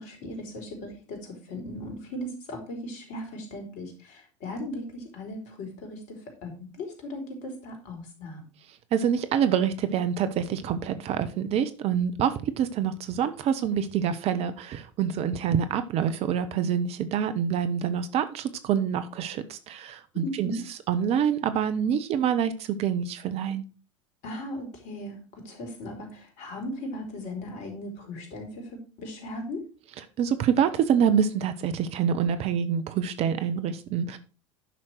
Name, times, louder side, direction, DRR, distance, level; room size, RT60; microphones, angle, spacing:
voice 1, 0.0-8.4 20.2-20.6 24.2-29.7, left 1 dB, 50° left, 4 dB, 3.8 m, -37 dB
voice 2, 8.9-20.5 20.9-23.6 30.2-34.2, right 8 dB, 40° right, 11 dB, 1.0 m, -26 dB
10.0 x 6.3 x 4.5 m, 0.35 s
figure-of-eight pair, 80°, 16 cm